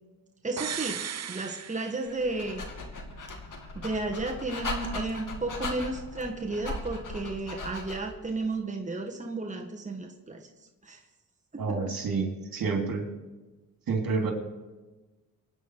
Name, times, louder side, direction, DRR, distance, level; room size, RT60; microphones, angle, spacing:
voice 1, 0.4-1.0 1.3-2.6 3.8-10.5 10.8-11.0 11.5-11.8, right 2 dB, 20° right, 1 dB, 1.7 m, -33 dB
sound 1, 0.6-2.5 2.8-2.9, right 8 dB, 45° right, 0.6 m, -37 dB
Dog, 2.1-8.2, left 2 dB, 60° left, 2.5 m, -38 dB
voice 2, 11.6-13.1 13.9-14.3, right 4 dB, 70° right, 2 dB, 3.3 m, -29 dB
24.5 x 9.6 x 4.9 m, 1.2 s
cardioid pair, 90°, 36 cm